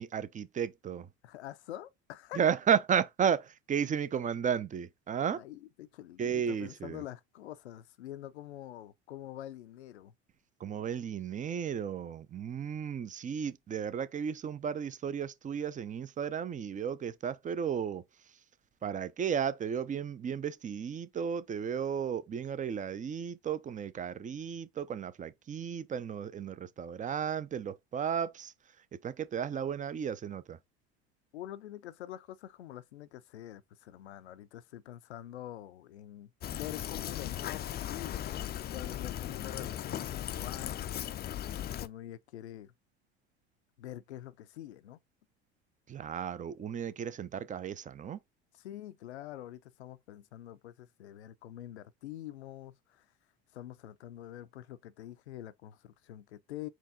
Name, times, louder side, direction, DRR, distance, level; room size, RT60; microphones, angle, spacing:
voice 1, 0.0-1.1 2.3-5.4 6.2-7.0 10.6-18.4 18.8-30.6 45.9-48.2, right 7 dB, 25° right, 0.5 m, -34 dB
voice 2, 1.2-2.4 5.3-10.1 31.3-42.7 43.8-45.0 48.6-53.1 53.5-56.7, left 13 dB, 90° left, 0.5 m, -46 dB
Fill (with liquid), 36.4-41.9, left 11 dB, 30° left, 0.4 m, -37 dB
4.5 x 3.0 x 3.6 m
hypercardioid pair, 80°, 32 cm